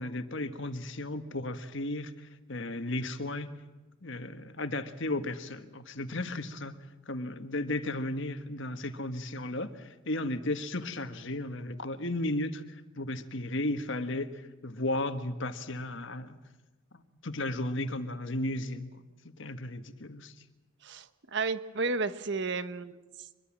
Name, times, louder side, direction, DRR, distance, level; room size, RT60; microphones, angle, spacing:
voice 1, 0.0-3.5 4.0-16.4 16.9-20.3, left 1 dB, 60° left, 9 dB, 1.6 m, -35 dB
voice 2, 20.8-23.0, right 3 dB, 55° right, 12 dB, 1.2 m, -32 dB
25.0 x 22.0 x 7.5 m, 1.2 s
head